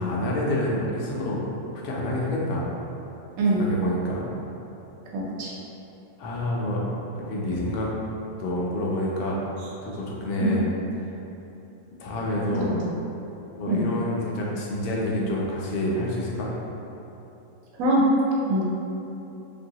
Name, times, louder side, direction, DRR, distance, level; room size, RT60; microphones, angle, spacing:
voice 1, 0.0-1.6 1.8-2.7 3.5-4.3 6.2-6.8 7.2-8.1 8.4-9.4 9.8-10.6 12.0-12.7 13.6-16.5, left 1 dB, 90° left, -4 dB, 1.1 m, -28 dB
voice 2, 5.1-5.5 10.4-10.5 12.6-12.9 13.7-13.8 17.8-18.0 18.5-18.6, right 1 dB, 75° right, -4 dB, 1.0 m, -23 dB
2.9 x 2.6 x 2.7 m, 2.9 s
omnidirectional pair, 1.6 m